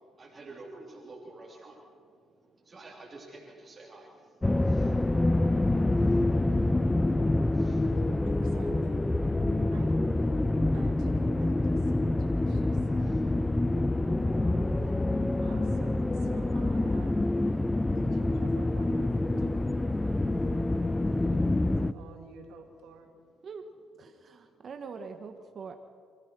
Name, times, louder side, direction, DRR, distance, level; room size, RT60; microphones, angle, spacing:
voice 1, 0.0-8.3 12.9-15.3 21.0-21.4 24.3-24.4, right 2 dB, 30° right, -3 dB, 3.2 m, -53 dB
sound 1, 4.4-21.9, left 2 dB, 15° left, 0.6 m, -26 dB
voice 2, 8.2-9.0 9.7-9.9 10.7-12.9 15.4-17.1 17.9-20.7 21.7-23.1, right 5 dB, 90° right, 3 dB, 2.8 m, -50 dB
voice 3, 24.0-25.7, right 5 dB, 50° right, 6 dB, 1.3 m, -43 dB
28.0 x 15.0 x 6.2 m, 2.1 s
cardioid pair, 85°, 0 cm